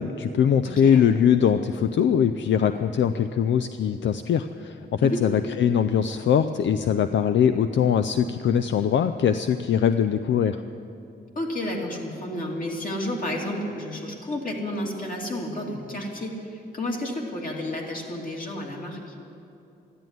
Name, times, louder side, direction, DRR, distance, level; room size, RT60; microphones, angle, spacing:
voice 1, 0.0-10.6, left 8 dB, 80° left, 9 dB, 0.5 m, -22 dB
voice 2, 0.6-1.0 5.0-5.3 11.3-19.1, left 1 dB, 45° left, -1 dB, 2.8 m, -31 dB
14.0 x 11.0 x 9.3 m, 2.7 s
wide cardioid pair, 130°, 19 cm